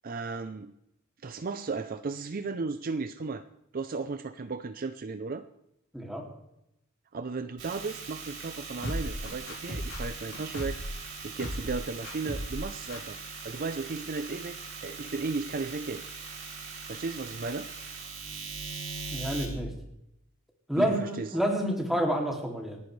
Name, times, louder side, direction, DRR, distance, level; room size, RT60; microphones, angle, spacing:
voice 1, 0.0-0.7 1.2-3.4 3.7-5.4 7.1-10.8 11.2-13.2 13.4-16.0 16.9-17.7 20.8-21.4, right 4 dB, 40° right, 10 dB, 0.5 m, -35 dB
voice 2, 5.9-6.3 19.1-19.7 20.7-22.8, equal, ahead, 0 dB, 2.5 m, -29 dB
sound 1, 7.6-19.5, right 4 dB, 60° right, 3.2 m, -41 dB
sound 2, 8.8-10.9 11.4-11.8 12.0-12.6 12.9-13.0, equal, 60° left, 4.4 m, -35 dB
28.5 x 9.7 x 3.2 m, 0.82 s
head